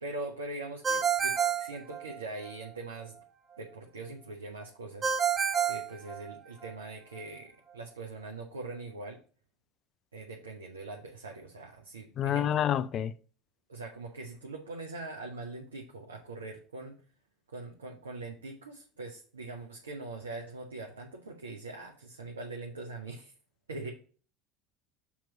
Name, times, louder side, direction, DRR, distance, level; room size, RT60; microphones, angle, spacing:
voice 1, 0.0-3.2 3.6-5.1 5.6-9.2 10.1-12.6 13.7-17.0 17.5-23.3 23.7-23.9, right 2 dB, 85° right, 0.7 m, -42 dB
Ringtone, 0.8-2.5 5.0-6.7, right 7 dB, 30° right, 1.0 m, -29 dB
voice 2, 12.2-13.1, left 10 dB, 45° left, 0.4 m, -28 dB
7.1 x 3.0 x 6.0 m
figure-of-eight pair, 70°, 0 cm